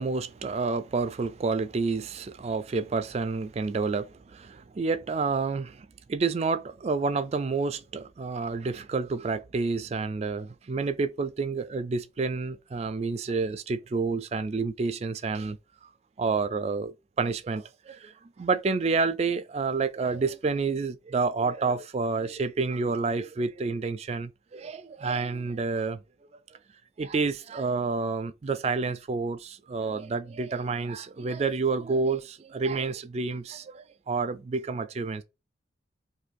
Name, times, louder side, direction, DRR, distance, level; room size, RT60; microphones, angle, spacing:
voice 1, 0.0-15.6 16.2-26.0 27.0-35.2, right 4 dB, 35° right, 0.3 m, -29 dB
2.6 x 2.5 x 3.9 m
head